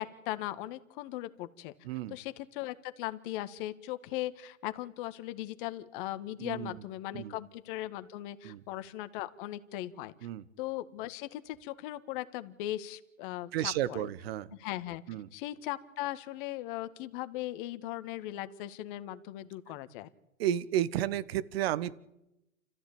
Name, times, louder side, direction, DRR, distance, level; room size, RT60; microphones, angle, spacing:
voice 1, 0.0-1.7 2.1-10.1 10.6-14.1 14.6-15.0 15.3-20.1, left 15 dB, 40° left, 11 dB, 1.8 m, -38 dB
voice 2, 1.8-2.1 6.4-6.7 7.1-7.4 8.4-8.6 10.2-10.4 13.5-14.5 15.1-15.3 20.4-22.0, right 12 dB, 50° right, 18 dB, 1.3 m, -32 dB
29.5 x 14.5 x 8.7 m, 0.92 s
hypercardioid pair, 115°, 39 cm